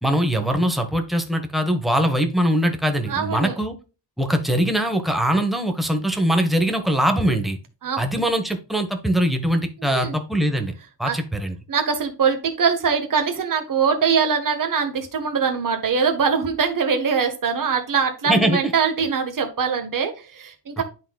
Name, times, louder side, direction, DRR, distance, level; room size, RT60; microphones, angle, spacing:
voice 1, 0.0-3.8 4.2-7.6 8.0-10.7 11.0-11.5 18.2-18.6 20.8-20.9, equal, ahead, 5 dB, 1.1 m, -22 dB
voice 2, 3.1-3.6 7.8-8.0 9.8-10.2 11.0-11.2 11.7-20.8, right 6 dB, 45° right, 5 dB, 1.4 m, -22 dB
11.5 x 4.0 x 2.3 m, 0.33 s
wide cardioid pair, 140°, 45 cm